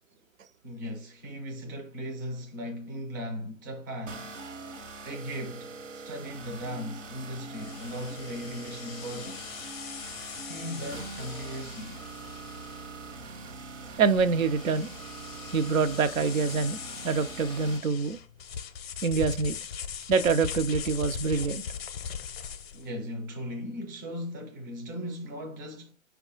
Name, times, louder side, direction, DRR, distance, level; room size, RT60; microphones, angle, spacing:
voice 1, 0.6-4.3 5.0-9.6 10.4-12.0 22.7-25.9, equal, 15° right, 0.4 m, -38 dB
sound 1, 4.1-17.8, right 3 dB, 65° right, 1.0 m, -43 dB
sound 2, 7.5-22.9, left 7 dB, 50° left, 0.5 m, -40 dB
voice 2, 14.0-14.9 15.5-18.2 19.0-19.6 20.1-21.6, right 5 dB, 80° right, 0.6 m, -25 dB
5.2 x 2.4 x 3.7 m
figure-of-eight pair, 130°, 40 cm